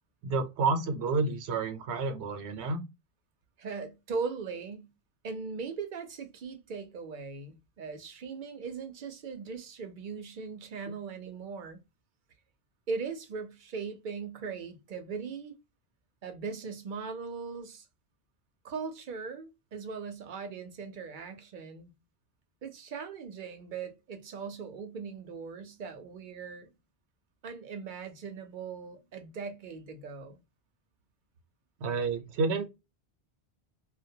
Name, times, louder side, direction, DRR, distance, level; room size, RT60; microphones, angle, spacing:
voice 1, 0.2-2.8 31.8-32.7, right 4 dB, 80° right, 0.9 m, -29 dB
voice 2, 3.6-4.9 5.2-11.8 12.9-15.6 16.2-17.9 18.6-21.9 22.6-26.7 27.4-30.4, right 5 dB, 55° right, 0.7 m, -39 dB
2.2 x 2.2 x 2.6 m
omnidirectional pair, 1.1 m